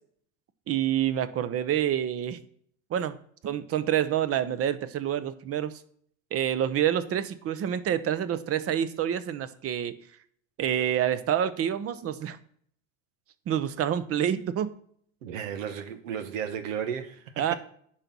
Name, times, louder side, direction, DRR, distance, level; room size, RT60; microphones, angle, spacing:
voice 1, 0.7-2.4 2.9-3.2 3.4-5.7 6.3-9.9 10.6-12.4 13.5-14.8 17.4-17.5, right 10 dB, 35° right, 0.8 m, -27 dB
voice 2, 15.2-17.5, right 8 dB, 90° right, 1.2 m, -34 dB
10.0 x 4.7 x 5.4 m
supercardioid pair, 105°, 38 cm